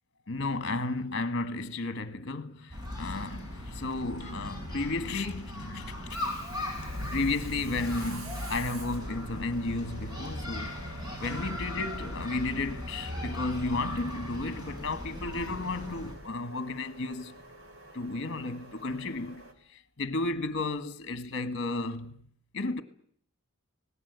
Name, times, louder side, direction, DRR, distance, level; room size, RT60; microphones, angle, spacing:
voice 1, 0.3-6.2 7.1-10.8 11.2-17.4 17.9-19.4 19.7-22.2 22.5-22.8, left 3 dB, 55° left, 1.7 m, -33 dB
sound 1, 2.7-16.1, left 1 dB, 20° right, 6.6 m, -38 dB
Subway metro underground, 6.0-19.5, equal, 65° right, 3.3 m, -46 dB
26.5 x 19.0 x 8.2 m
head